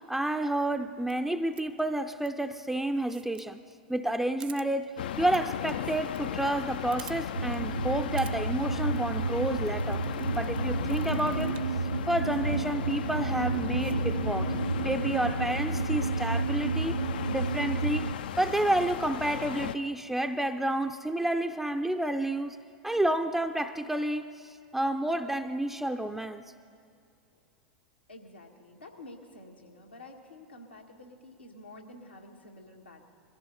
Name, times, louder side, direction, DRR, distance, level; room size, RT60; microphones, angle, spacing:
voice 1, 0.0-3.6 3.9-10.0 10.3-11.5 12.1-14.5 14.8-17.0 17.3-18.1 18.4-22.6 22.8-26.4, right 1 dB, 5° right, 7 dB, 0.4 m, -30 dB
sound 1, 1.0-1.1 1.5-1.8 2.2-2.3 2.9-3.4 3.7-3.8 4.0-4.1 4.4-4.7 5.3-5.4 5.7-6.2 6.5-6.6 6.9-7.2 7.5-7.6 8.0-8.3 8.8-9.0 9.7-10.6 10.9-11.7 12.3-12.4 13.0-13.1 13.5-14.0, right 12 dB, 60° right, 0.7 m, -49 dB
sound 2, 5.0-19.8, left 9 dB, 60° left, 0.4 m, -36 dB
sound 3, 7.4-18.2, right 4 dB, 85° right, 0.4 m, -31 dB
voice 2, 28.1-33.1, left 1 dB, 90° left, 0 dB, 1.7 m, -49 dB
21.5 x 14.5 x 4.0 m, 2.4 s
figure-of-eight pair, 90°, 5 cm